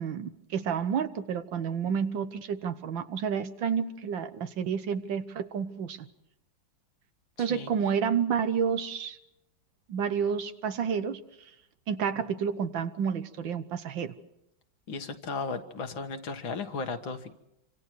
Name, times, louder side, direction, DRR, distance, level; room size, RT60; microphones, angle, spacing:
voice 1, 0.0-6.0 7.4-9.2 9.9-11.2 11.9-14.1, right 7 dB, 80° right, 11 dB, 1.9 m, -30 dB
voice 2, 14.9-17.4, left 4 dB, 85° left, 6 dB, 2.3 m, -35 dB
27.0 x 25.5 x 4.7 m, 0.84 s
omnidirectional pair, 2.1 m